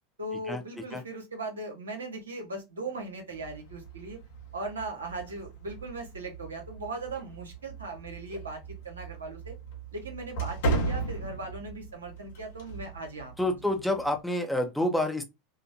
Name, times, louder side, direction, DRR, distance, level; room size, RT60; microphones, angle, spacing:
voice 1, 0.2-4.2 4.5-9.5 9.9-13.6, right 2 dB, 85° right, 1.0 m, -39 dB
sound 1, 3.3-14.2, right 3 dB, 70° left, 1.0 m, -37 dB
voice 2, 13.4-15.3, left 1 dB, ahead, 0.7 m, -28 dB
2.9 x 2.1 x 2.5 m
hypercardioid pair, 85°, 0 cm